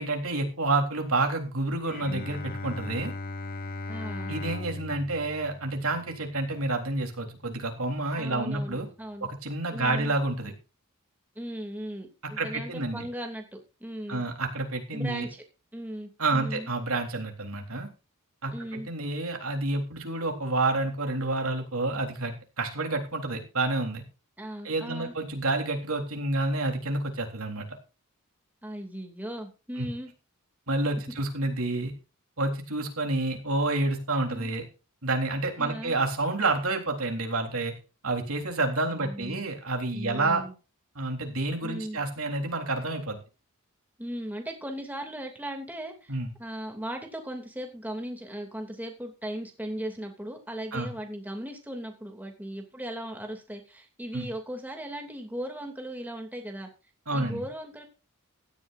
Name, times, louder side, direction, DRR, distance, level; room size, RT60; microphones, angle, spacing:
voice 1, 0.0-3.1 4.3-8.9 9.2-10.5 12.4-13.1 14.1-15.3 16.2-17.9 18.4-24.0 24.6-27.7 29.8-29.9 30.7-31.9 32.4-34.6 35.0-37.7 38.0-40.4 41.0-43.2 46.1-46.3 50.7-50.9 54.1-54.3 57.1-57.4, right 2 dB, 70° right, 3 dB, 3.7 m, -29 dB
Bowed string instrument, 1.8-7.1, left 2 dB, 40° left, 0.9 m, -38 dB
voice 2, 3.9-4.3 8.2-9.3 9.7-10.1 11.3-14.2 14.9-15.4 15.7-16.7 18.5-18.9 24.4-25.1 28.6-30.1 34.3-34.6 35.6-36.0 38.8-39.5 39.9-40.5 41.6-42.0 44.0-56.7 57.1-57.9, equal, 10° right, 3 dB, 2.7 m, -37 dB
16.5 x 13.0 x 2.6 m, 0.31 s
head